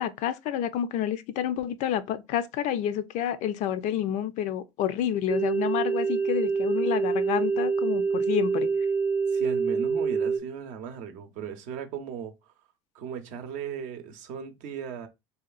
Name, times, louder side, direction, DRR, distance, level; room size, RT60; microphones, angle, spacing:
voice 1, 0.0-8.7, left 10 dB, 55° left, 0.4 m, -29 dB
sound 1, 5.3-10.4, right 5 dB, 20° right, 0.5 m, -26 dB
voice 2, 9.3-12.5 12.9-15.1, right 7 dB, 60° right, 0.6 m, -37 dB
2.8 x 2.2 x 2.3 m
hypercardioid pair, 80°, 15 cm